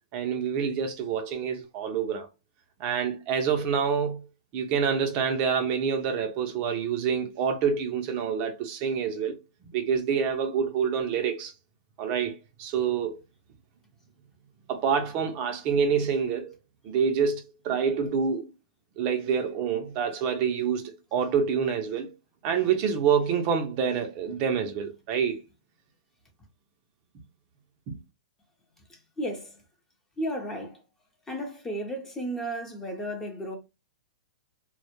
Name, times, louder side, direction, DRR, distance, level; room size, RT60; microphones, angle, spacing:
voice 1, 0.1-2.3 2.8-4.3 4.5-9.4 9.7-11.5 12.0-13.2 14.7-16.5 16.8-18.5 19.0-22.1 22.4-25.4 27.9-28.0, right 6 dB, 35° right, 0.4 m, -27 dB
voice 2, 28.9-29.6 30.2-30.8 31.3-33.6, right 1 dB, 10° left, 0.6 m, -34 dB
2.1 x 2.1 x 2.9 m
hypercardioid pair, 145°, 4 cm